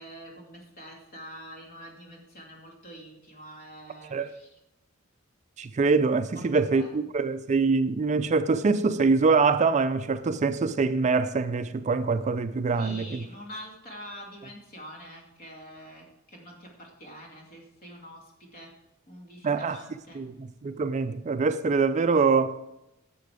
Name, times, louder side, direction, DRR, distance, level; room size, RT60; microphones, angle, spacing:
voice 1, 0.0-4.6 6.3-7.1 12.7-18.7 19.1-20.2, equal, 45° left, 2.5 m, -45 dB
voice 2, 5.6-13.2 19.4-19.8 20.1-22.6, right 4 dB, 35° right, 0.4 m, -24 dB
10.5 x 7.6 x 4.9 m
head